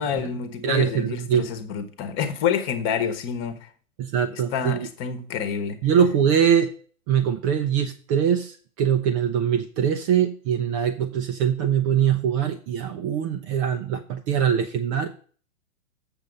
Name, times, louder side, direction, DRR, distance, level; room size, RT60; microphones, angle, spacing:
voice 1, 0.0-3.7 4.3-5.8, left 7 dB, 30° left, 1.2 m, -28 dB
voice 2, 0.6-1.5 4.0-4.9 5.8-6.7 7.1-15.1, right 8 dB, 25° right, 0.5 m, -23 dB
7.3 x 6.9 x 5.3 m
hypercardioid pair, 120°, 42 cm